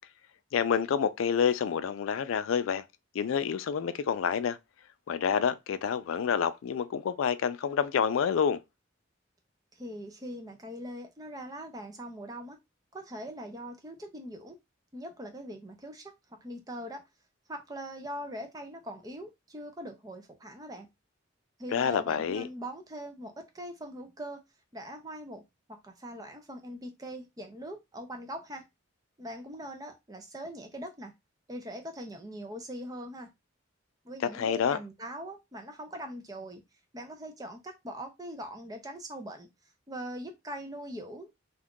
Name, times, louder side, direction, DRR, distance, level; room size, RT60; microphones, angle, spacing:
voice 1, 0.5-2.9 3.1-4.6 5.1-8.6 21.7-22.5 34.3-34.8, left 7 dB, 80° left, 0.3 m, -28 dB
voice 2, 9.7-12.6 12.9-14.6 14.9-16.1 16.4-17.0 17.5-20.9 21.6-24.4 24.7-25.4 25.8-28.6 29.2-31.1 31.5-33.3 34.0-36.6 36.9-39.5 39.9-41.4, equal, 20° right, 0.5 m, -41 dB
2.6 x 2.4 x 3.6 m
head